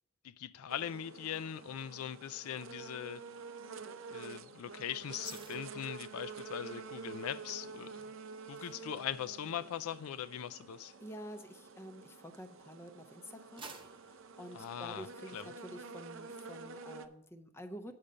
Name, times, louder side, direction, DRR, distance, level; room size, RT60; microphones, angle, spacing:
voice 1, 0.2-3.2 4.1-8.2 8.5-10.9 14.5-15.1 15.3-15.5, left 9 dB, 75° left, 0.4 m, -41 dB
sound 1, 0.7-17.1, right 4 dB, 60° right, 0.6 m, -48 dB
sound 2, 5.2-12.6 13.0-15.4 15.8-16.0, right 4 dB, 20° right, 0.7 m, -57 dB
voice 2, 11.0-13.7 14.0-18.0, equal, 10° left, 0.5 m, -49 dB
8.6 x 5.1 x 6.7 m
head